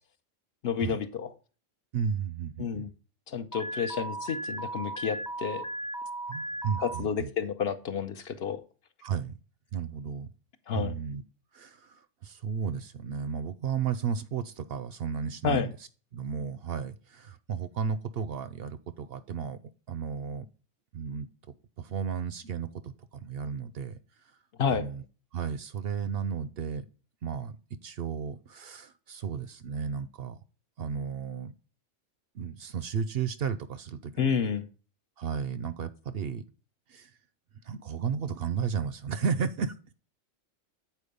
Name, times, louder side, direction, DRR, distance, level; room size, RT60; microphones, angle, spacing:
voice 1, 0.6-1.3 2.6-2.9 3.3-5.7 6.8-8.6 10.7-11.0 15.4-15.7 24.6-24.9 34.2-34.6, left 6 dB, 60° left, 10 dB, 0.9 m, -30 dB
voice 2, 1.9-2.9 6.3-7.3 9.0-9.4 9.7-10.3 10.7-11.2 11.5-15.7 16.1-19.6 19.9-20.5 20.9-21.3 21.8-24.0 24.7-25.0 25.3-26.8 27.2-27.6 27.8-30.4 30.8-31.5 32.3-34.4 35.2-36.4 36.9-37.1 37.6-39.7, right 6 dB, 60° right, 14 dB, 0.7 m, -33 dB
Alarm, 3.5-7.0, right 1 dB, 20° left, 0.6 m, -36 dB
8.5 x 4.5 x 5.2 m, 0.36 s
omnidirectional pair, 1.3 m